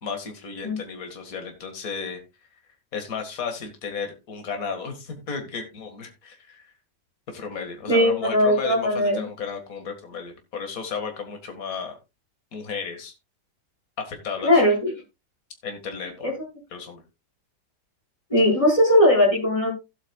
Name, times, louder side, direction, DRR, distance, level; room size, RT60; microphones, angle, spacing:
voice 1, 0.0-2.2 2.9-6.7 7.3-12.0 12.5-13.1 14.0-14.6 15.6-16.3 16.7-17.0, left 5 dB, 55° left, 5 dB, 2.3 m, -33 dB
voice 2, 7.9-9.2 14.4-14.9 16.2-16.3 18.3-19.7, left 1 dB, 20° left, -3 dB, 4.9 m, -19 dB
16.0 x 8.4 x 2.3 m, 0.25 s
omnidirectional pair, 1.8 m